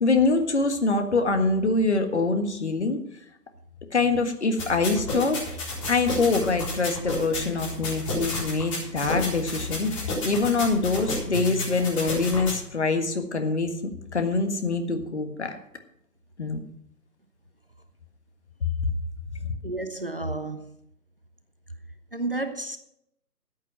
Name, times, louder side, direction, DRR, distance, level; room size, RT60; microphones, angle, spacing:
voice 1, 0.0-3.0 3.9-5.4 5.9-13.7 14.1-15.6 16.4-16.6 19.4-19.5, left 3 dB, 45° left, 1.7 m, -24 dB
sound 1, 4.6-12.6, left 2 dB, 20° left, 4.3 m, -31 dB
voice 2, 19.6-20.7 22.1-22.8, right 2 dB, 35° right, 0.7 m, -31 dB
14.0 x 8.4 x 6.0 m
figure-of-eight pair, 155°, 48 cm